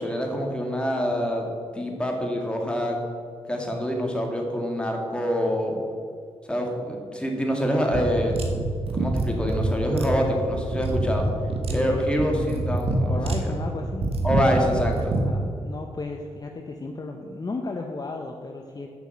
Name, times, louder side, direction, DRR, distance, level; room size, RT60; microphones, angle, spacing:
voice 1, 0.0-1.5 1.7-3.0 3.5-5.8 6.5-8.4 8.9-11.2 11.7-13.6 14.2-15.2, equal, 10° left, 1 dB, 2.0 m, -26 dB
sound 1, 7.9-15.3, right 2 dB, 60° right, 1.4 m, -26 dB
voice 2, 11.7-12.6 13.1-14.1 15.1-18.9, left 3 dB, 35° left, 3 dB, 0.7 m, -34 dB
7.2 x 5.8 x 7.5 m, 2.2 s
cardioid pair, 70°, 11 cm